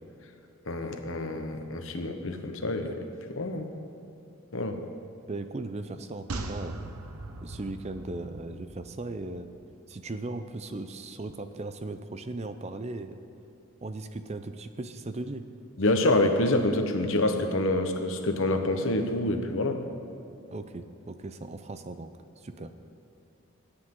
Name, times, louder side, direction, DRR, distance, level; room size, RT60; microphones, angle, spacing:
voice 1, 0.7-3.0 3.3-3.7 4.5-4.8 15.8-19.8, left 1 dB, 60° left, 6 dB, 1.0 m, -27 dB
voice 2, 5.3-6.9 7.4-9.5 9.9-13.2 13.8-15.4 20.5-22.1 22.4-22.7, right 2 dB, 30° right, 9 dB, 0.5 m, -37 dB
sound 1, 6.3-9.7 10.0-10.1, right 2 dB, 85° right, 0.9 m, -40 dB
20.0 x 10.0 x 3.8 m, 2.7 s
head